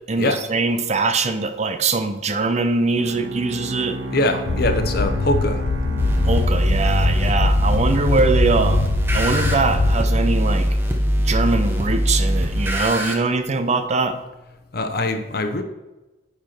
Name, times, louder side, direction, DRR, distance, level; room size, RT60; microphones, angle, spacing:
voice 1, 0.1-4.0 6.2-8.8 9.1-10.7 11.2-14.2, right 3 dB, 35° right, 0.6 m, -22 dB
Bowed string instrument, 3.0-7.4, right 2 dB, 85° right, 0.8 m, -33 dB
voice 2, 4.1-5.6 14.7-15.6, left 1 dB, 55° left, 0.9 m, -22 dB
sound 1, 4.5-10.3, left 4 dB, 80° left, 0.5 m, -23 dB
sound 2, 6.0-13.1, equal, 10° right, 0.9 m, -21 dB
9.8 x 4.5 x 4.4 m
head